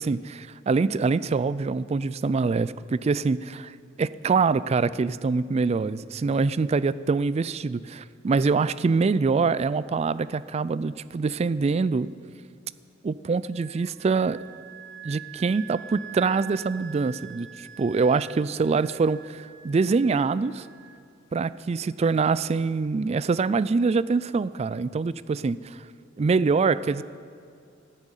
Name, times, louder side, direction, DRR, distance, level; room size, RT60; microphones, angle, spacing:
voice 1, 0.0-12.1 13.0-14.4 15.0-20.7 21.3-25.6 26.2-27.0, right 4 dB, 30° right, 17 dB, 0.3 m, -24 dB
Wind instrument woodwind instrument, 13.5-21.0, right 10 dB, 80° right, 1.3 m, -45 dB
13.5 x 9.8 x 9.0 m, 2.4 s
head